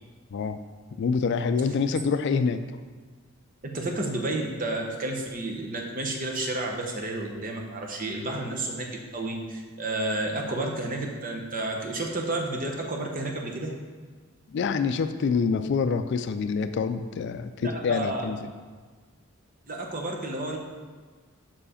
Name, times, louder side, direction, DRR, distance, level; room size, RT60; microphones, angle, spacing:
voice 1, 1.0-2.6 14.5-18.5, left 5 dB, 55° left, 10 dB, 0.3 m, -26 dB
voice 2, 3.6-13.7 17.6-18.2 19.7-20.6, right 2 dB, 40° right, 1 dB, 0.9 m, -31 dB
5.7 x 4.9 x 5.0 m, 1.4 s
head